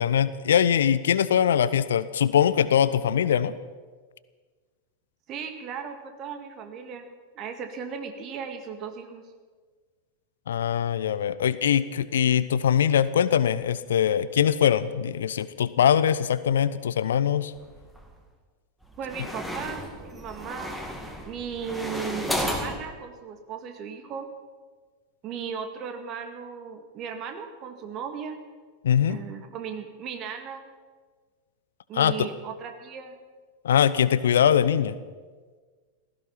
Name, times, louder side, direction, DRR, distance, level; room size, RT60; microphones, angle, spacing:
voice 1, 0.0-3.5 10.5-17.5 28.8-29.2 31.9-32.1 33.6-34.9, left 9 dB, 65° left, 16 dB, 0.6 m, -22 dB
voice 2, 5.3-7.1 7.4-9.3 19.0-20.8 21.2-24.3 25.2-28.4 29.1-30.7 31.9-33.2, right 7 dB, 35° right, 6 dB, 2.0 m, -36 dB
sound 1, 17.5-18.2 18.8-22.8, left 1 dB, ahead, 2.3 m, -33 dB
17.0 x 14.5 x 5.8 m, 1.5 s
figure-of-eight pair, 90°, 0 cm